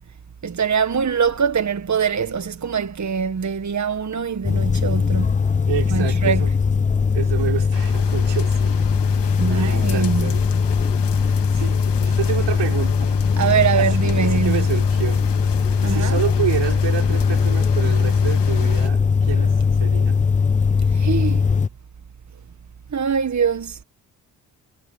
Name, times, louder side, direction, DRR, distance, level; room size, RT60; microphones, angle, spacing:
voice 1, 0.4-5.3 5.9-6.4 9.4-10.3 13.4-14.6 15.8-16.2 20.9-21.5 22.9-23.8, right 6 dB, 40° right, 1.6 m, -23 dB
sound 1, 4.4-21.7, left 5 dB, 20° left, 0.4 m, -20 dB
voice 2, 5.7-6.5 7.1-8.8 9.5-10.5 11.2-13.2 13.8-15.2 15.9-20.2, right 10 dB, 75° right, 6.0 m, -29 dB
sound 2, 7.7-18.9, left 10 dB, 70° left, 2.1 m, -35 dB
supercardioid pair, 50°, 43 cm